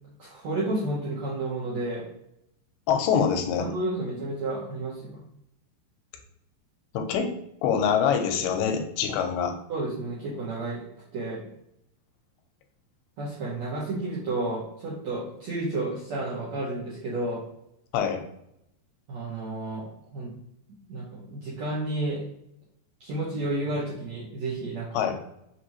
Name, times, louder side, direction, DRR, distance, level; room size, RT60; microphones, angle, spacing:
voice 1, 0.2-2.0 3.6-5.2 9.7-10.8 11.1-11.4 13.2-17.4 19.1-19.8 20.1-20.3 20.9-22.2 23.0-25.0, right 2 dB, 80° right, -7 dB, 1.6 m, -31 dB
voice 2, 2.9-3.7 6.9-7.3 7.6-9.5 17.9-18.2 24.9-25.2, left 7 dB, 90° left, 5 dB, 2.6 m, -24 dB
5.9 x 2.7 x 2.9 m, 0.78 s
omnidirectional pair, 4.5 m